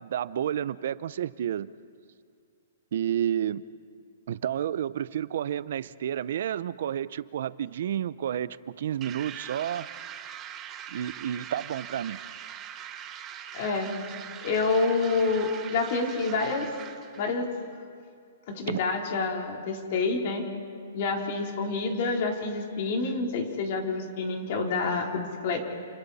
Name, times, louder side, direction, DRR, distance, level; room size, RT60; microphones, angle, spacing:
voice 1, 0.0-1.7 2.9-3.6 4.3-9.9 10.9-12.2 18.7-18.8, right 10 dB, 60° right, 17 dB, 0.7 m, -30 dB
sound 1, 9.0-17.3, right 9 dB, 20° right, 1.1 m, -42 dB
voice 2, 13.5-13.9 14.4-16.7 17.2-17.5 18.5-20.4 20.9-25.6, left 4 dB, 45° left, 1 dB, 3.7 m, -28 dB
30.0 x 29.0 x 4.2 m, 2.3 s
hypercardioid pair, 160°, 0 cm